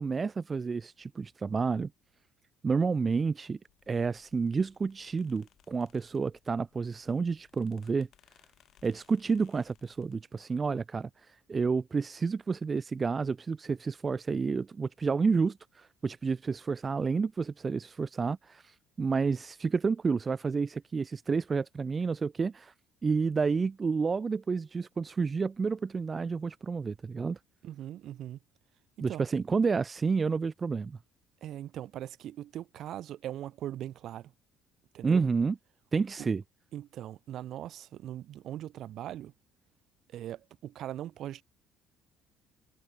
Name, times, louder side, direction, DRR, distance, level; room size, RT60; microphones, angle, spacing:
voice 1, 0.0-1.9 2.6-3.6 3.9-8.1 8.8-22.7 23.0-27.4 29.0-31.0 35.0-35.6 35.9-36.4, right 5 dB, 30° right, 0.3 m, -30 dB
sound 1, 3.7-10.2, left 11 dB, 60° left, 8.0 m, -66 dB
voice 2, 27.6-28.4 29.1-29.3 31.4-34.3 34.9-35.2 36.2-36.3 36.7-39.3 40.1-41.4, right 12 dB, 60° right, 0.8 m, -40 dB
supercardioid pair, 90°, 0 cm